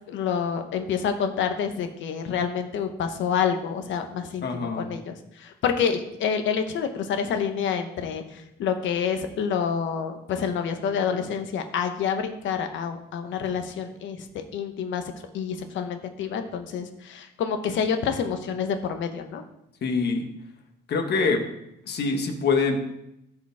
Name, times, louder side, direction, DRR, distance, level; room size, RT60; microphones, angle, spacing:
voice 1, 0.1-5.1 5.4-15.0 15.3-19.4, left 7 dB, 85° left, 7 dB, 1.1 m, -28 dB
voice 2, 4.4-4.9 19.8-20.2 20.9-21.4 21.9-22.8, left 4 dB, 60° left, 4 dB, 1.6 m, -24 dB
14.5 x 5.1 x 3.6 m, 0.83 s
cardioid pair, 110°, 19 cm